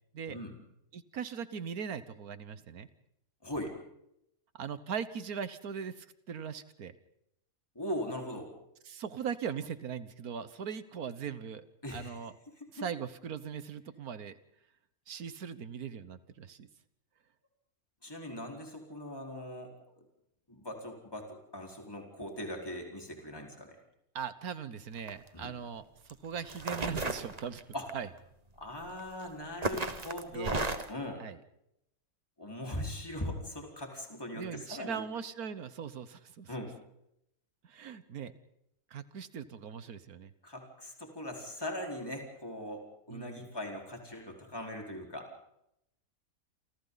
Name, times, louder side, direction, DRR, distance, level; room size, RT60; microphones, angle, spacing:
voice 1, 0.9-2.9 4.6-6.9 8.8-11.6 11.9-12.3 12.7-14.3 15.1-16.7 24.1-25.8 26.2-27.6 27.9-28.1 29.8-29.9 30.3-30.7 31.2-31.4 34.3-36.5 37.6-38.3 38.9-40.3 43.1-43.5, right 7 dB, 85° right, 13 dB, 1.7 m, -40 dB
voice 2, 3.4-3.8 7.7-8.5 11.8-12.2 12.6-12.9 18.0-19.7 20.5-23.8 25.3-25.5 27.7-27.9 28.6-31.2 32.4-35.0 36.5-36.7 40.4-45.3, left 1 dB, 15° left, 1 dB, 4.8 m, -40 dB
sound 1, 25.0-25.3 26.1-26.2 26.5-27.9 29.0-29.2 29.6-31.0, right 3 dB, 30° right, 1.5 m, -34 dB
29.0 x 28.0 x 4.1 m, 0.80 s
omnidirectional pair, 1.5 m